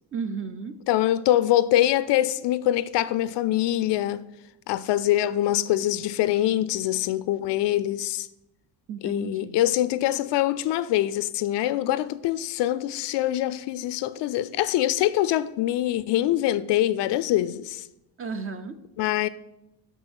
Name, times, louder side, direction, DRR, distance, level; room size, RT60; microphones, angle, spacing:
voice 1, 0.1-0.8 8.9-9.7 18.2-18.8, right 5 dB, 30° right, 0.6 m, -34 dB
voice 2, 0.9-4.3 4.7-8.3 9.0-17.9 19.0-19.3, left 13 dB, 65° left, 0.5 m, -24 dB
6.2 x 5.3 x 6.2 m
cardioid pair, 95°, 45 cm